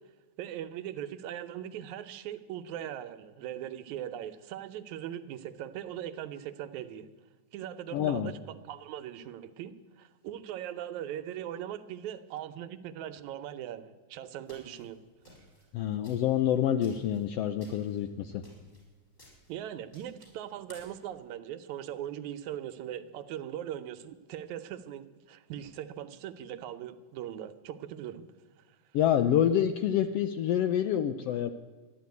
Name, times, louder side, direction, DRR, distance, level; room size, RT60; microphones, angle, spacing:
voice 1, 0.4-7.1 7.5-15.0 19.5-28.2 28.7-28.8, right 11 dB, 80° right, 11 dB, 2.1 m, -40 dB
voice 2, 7.9-8.3 15.7-18.4 28.9-31.5, left 10 dB, 75° left, 9 dB, 1.4 m, -27 dB
sound 1, 14.4-21.1, equal, 20° left, 6.1 m, -58 dB
13.5 x 11.0 x 9.5 m, 1.3 s
omnidirectional pair, 3.4 m